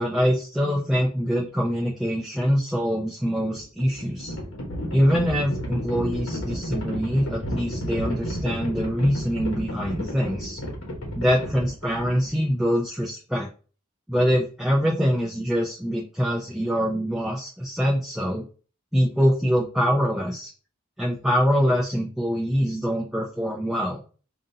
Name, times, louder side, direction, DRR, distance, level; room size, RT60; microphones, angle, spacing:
voice 1, 0.0-4.3 4.9-10.6 11.1-13.5 14.1-18.4 18.9-20.5 21.0-24.0, equal, ahead, -3 dB, 0.6 m, -24 dB
Livestock farm animals working animals, 3.5-12.5, equal, 75° left, 1.2 m, -32 dB
5.1 x 2.6 x 2.7 m, 0.38 s
head